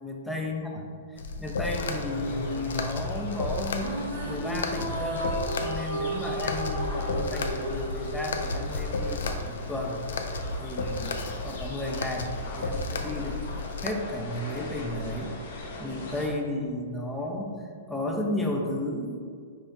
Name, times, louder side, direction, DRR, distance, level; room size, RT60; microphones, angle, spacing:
voice 1, 0.0-0.7 1.1-3.9 4.2-5.3 5.6-10.0 10.6-11.2 11.4-13.4 13.8-15.4 15.8-17.5 17.9-19.2, left 1 dB, 5° left, 0 dB, 0.5 m, -33 dB
sound 1, 1.2-13.9, left 3 dB, 80° left, 0.4 m, -33 dB
sound 2, 1.8-16.3, left 3 dB, 55° left, 0.9 m, -39 dB
sound 3, 3.6-9.1, right 1 dB, 65° right, 1.2 m, -34 dB
4.9 x 2.4 x 4.2 m, 2.1 s
hypercardioid pair, 150°, 0 cm